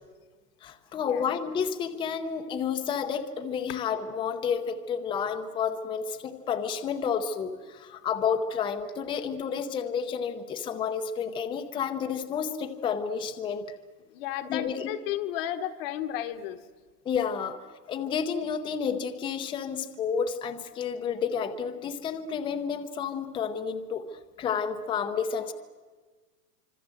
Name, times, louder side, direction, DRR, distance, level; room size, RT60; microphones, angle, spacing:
voice 1, 0.6-13.6 14.5-14.9 17.0-17.6 17.9-24.0 24.4-25.5, left 7 dB, 10° left, 7 dB, 0.7 m, -30 dB
voice 2, 14.1-16.6, left 11 dB, 40° left, 7 dB, 1.2 m, -33 dB
26.0 x 25.0 x 7.8 m, 1.4 s
supercardioid pair, 160°, 46 cm